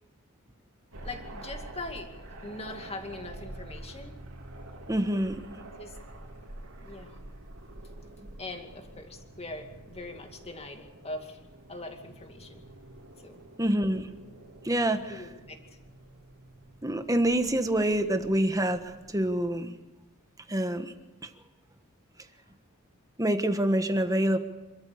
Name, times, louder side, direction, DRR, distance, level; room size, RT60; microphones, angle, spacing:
sound 1, 0.9-19.5, right 1 dB, 75° right, 3.4 m, -47 dB
voice 1, 1.0-2.1 2.4-4.2 5.8-6.0 6.8-7.1 8.4-11.4 11.7-12.6 13.2-13.4 14.9-15.6, left 2 dB, 30° left, 4 dB, 2.4 m, -41 dB
voice 2, 4.9-5.4 13.6-14.1 14.6-15.2 16.8-19.8 20.5-20.9 21.2-21.3 23.2-24.4, right 1 dB, 15° right, 8 dB, 1.3 m, -26 dB
27.5 x 13.5 x 7.0 m, 1.1 s
head